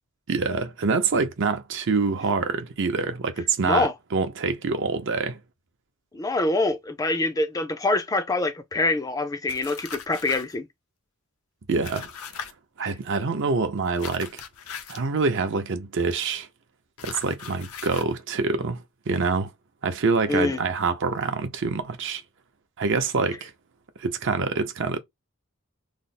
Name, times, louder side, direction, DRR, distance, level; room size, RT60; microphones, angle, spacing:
voice 1, 0.3-5.4 11.7-12.1 12.8-14.4 14.9-16.5 17.0-19.5 19.8-22.2 22.8-23.5 24.0-25.0, right 4 dB, 60° right, 0.6 m, -26 dB
voice 2, 6.1-10.7 20.3-20.6, left 2 dB, 15° left, 0.4 m, -25 dB
sound 1, 9.5-10.5 11.8-12.5 14.0-15.1 17.0-18.1, left 7 dB, 90° left, 0.7 m, -39 dB
3.2 x 2.0 x 4.0 m
head